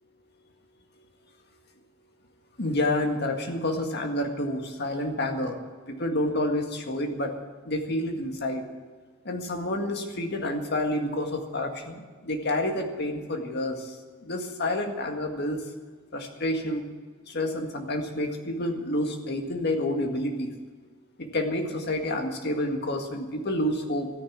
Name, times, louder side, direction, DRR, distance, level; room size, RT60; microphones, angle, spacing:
voice 1, 2.6-5.6 5.9-7.3 7.7-8.6 9.3-13.9 14.2-15.6 16.1-16.8 17.3-20.5 21.2-24.1, left 1 dB, 55° left, 4 dB, 1.9 m, -29 dB
14.0 x 9.8 x 8.7 m, 1.4 s
head